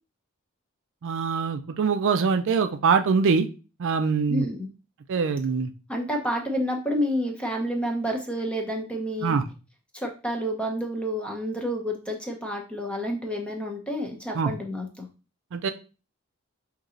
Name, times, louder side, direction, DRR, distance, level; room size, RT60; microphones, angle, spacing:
voice 1, 1.0-3.5 3.8-4.4 5.1-5.7 9.2-9.4 14.3-14.5 15.5-15.7, right 5 dB, 60° right, 0.4 m, -23 dB
voice 2, 4.3-4.7 5.9-9.4 9.9-15.1, equal, 5° left, 0.7 m, -29 dB
5.3 x 2.9 x 2.5 m
head